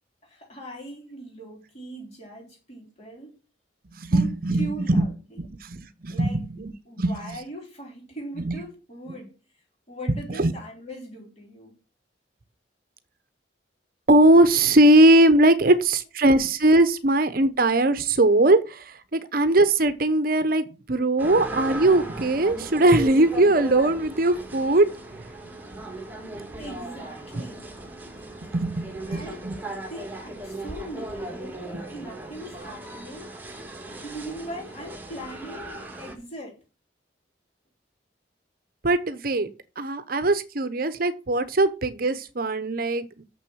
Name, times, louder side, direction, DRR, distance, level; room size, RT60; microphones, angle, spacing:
voice 1, 0.2-3.3 4.1-4.3 4.6-5.4 6.1-6.4 6.9-9.4 9.9-11.8 26.6-27.7 29.1-29.5 29.8-33.3 34.0-36.6, right 1 dB, 35° left, 3.9 m, -40 dB
voice 2, 4.0-5.0 5.4-6.4 7.0-7.1 8.4-8.6 10.1-10.5 14.1-24.9 28.5-29.6 38.8-39.5 39.8-43.2, right 1 dB, 50° right, 0.8 m, -20 dB
sound 1, 21.2-36.2, right 2 dB, 10° right, 1.9 m, -37 dB
7.0 x 6.2 x 6.3 m
head